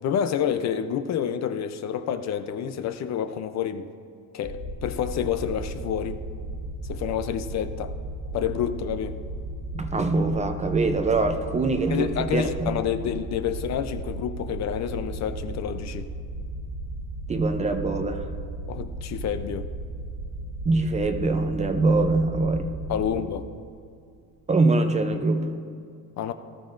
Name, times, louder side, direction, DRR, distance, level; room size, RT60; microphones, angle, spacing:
voice 1, 0.0-3.9 4.3-6.2 6.9-7.9 8.3-9.2 11.9-16.1 18.7-19.7 22.9-23.5 26.2-26.3, left 9 dB, 50° left, 10 dB, 0.6 m, -28 dB
sound 1, 4.4-23.1, right 2 dB, 45° right, 1.2 m, -35 dB
voice 2, 9.7-12.8 17.3-18.3 20.7-22.7 24.5-25.6, right 3 dB, 20° right, 7 dB, 0.5 m, -23 dB
18.0 x 13.5 x 2.5 m, 2.3 s
cardioid pair, 145°, 36 cm